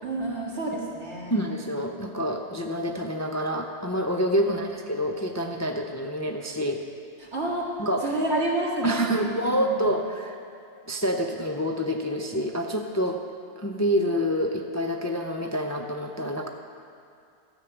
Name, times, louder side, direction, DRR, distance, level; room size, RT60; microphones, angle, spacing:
voice 1, 0.0-1.4 4.4-4.6 7.2-7.7 8.0-9.9, right 2 dB, 90° right, -4 dB, 2.2 m, -29 dB
voice 2, 1.3-6.8 7.8-8.0 8.8-10.4 10.9-13.2 13.6-16.5, equal, 25° left, 2 dB, 0.4 m, -27 dB
12.5 x 7.9 x 6.0 m, 2.4 s
omnidirectional pair, 1.1 m